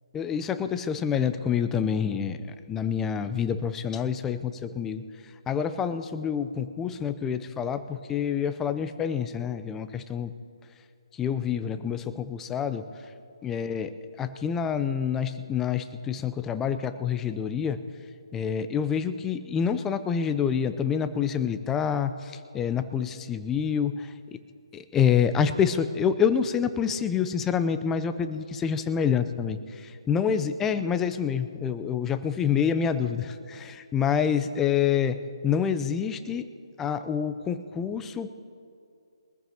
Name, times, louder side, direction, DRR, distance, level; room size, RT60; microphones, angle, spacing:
voice 1, 0.1-5.0 5.5-10.3 11.2-12.8 13.4-13.9 14.2-17.8 18.3-24.1 24.7-35.2 35.4-36.5 36.8-38.3, left 7 dB, 10° left, 10 dB, 0.5 m, -27 dB
23.0 x 14.0 x 2.9 m, 2.5 s
figure-of-eight pair, 150°, 3 cm